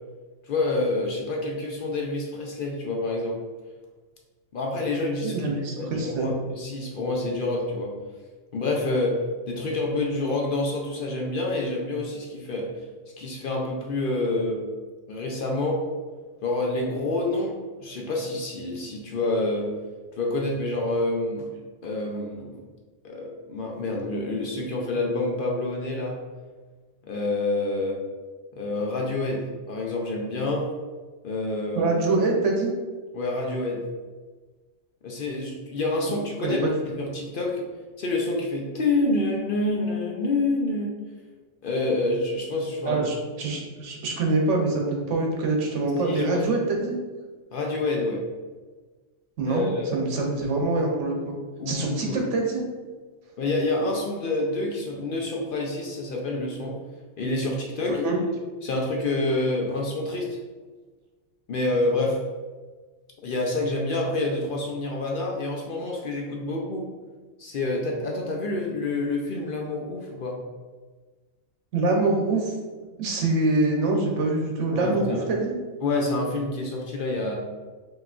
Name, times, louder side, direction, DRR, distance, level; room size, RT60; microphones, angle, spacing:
voice 1, 0.5-3.4 4.5-5.3 5.8-7.9 8.5-9.2 9.5-12.7 13.2-14.6 15.1-15.8 16.4-19.7 20.2-21.5 21.8-22.6 23.0-26.2 27.0-28.0 28.5-30.7 31.2-32.0 33.1-33.9 35.0-37.7 38.0-41.0 41.6-43.1 46.0-46.5 47.5-48.2 49.4-49.9 51.6-52.2 53.4-56.8 57.2-58.0 58.6-60.3 61.5-62.2 63.2-66.9 67.4-70.4 74.7-75.2 75.8-77.4, left 2 dB, 55° left, -1 dB, 0.7 m, -27 dB
voice 2, 5.2-6.3 31.8-32.7 36.4-36.7 42.9-47.0 49.4-51.3 51.7-52.6 57.9-58.2 71.7-72.5 73.0-75.5, right 2 dB, 80° right, 1 dB, 1.1 m, -25 dB
5.7 x 3.0 x 2.4 m, 1.4 s
omnidirectional pair, 1.2 m